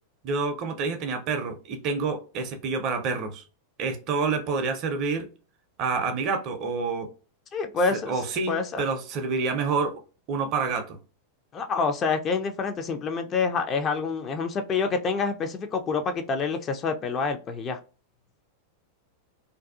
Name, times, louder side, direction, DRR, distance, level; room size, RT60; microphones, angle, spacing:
voice 1, 0.2-3.4 3.8-5.3 5.8-7.1 7.9-10.0 10.3-11.0, right 4 dB, 40° right, 0.5 m, -28 dB
voice 2, 7.5-8.1 8.5-8.8 11.5-17.8, left 4 dB, 30° left, 0.4 m, -27 dB
2.5 x 2.2 x 2.4 m
figure-of-eight pair, 90°, 0 cm